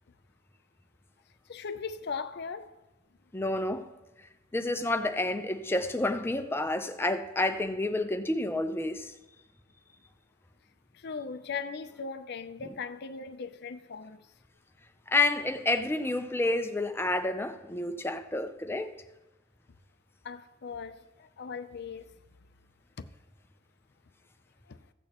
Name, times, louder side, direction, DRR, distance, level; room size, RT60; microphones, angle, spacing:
voice 1, 1.5-2.7 10.9-14.2 20.2-22.1 23.0-23.1 24.7-24.8, left 5 dB, 60° left, 0.5 m, -39 dB
voice 2, 3.3-3.9 4.5-9.1 15.1-18.9, left 2 dB, 10° left, 0.6 m, -29 dB
15.5 x 8.6 x 3.0 m
head